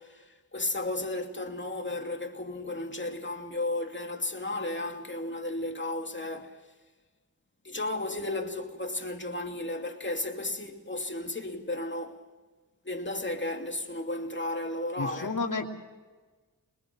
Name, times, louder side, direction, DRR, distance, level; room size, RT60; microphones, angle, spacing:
voice 1, 0.0-6.6 7.6-12.2 12.8-15.4, left 2 dB, 30° left, 2.7 m, -34 dB
voice 2, 15.0-15.7, left 4 dB, 55° left, 3.1 m, -31 dB
23.5 x 21.0 x 6.4 m
cardioid pair, 45°, 38 cm